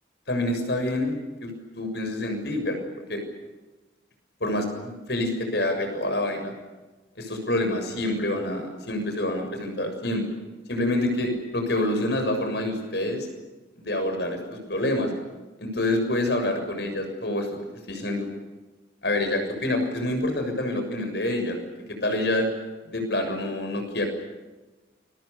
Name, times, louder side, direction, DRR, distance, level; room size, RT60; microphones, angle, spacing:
voice 1, 0.3-1.5 1.8-2.8 3.1-3.2 4.4-6.5 7.2-10.2 10.7-13.3 13.8-15.1 15.6-17.5 17.9-18.3 19.0-21.6 21.9-22.5 22.9-24.1, left 1 dB, 65° left, 6 dB, 7.0 m, -27 dB
29.0 x 23.5 x 6.9 m, 1.2 s
head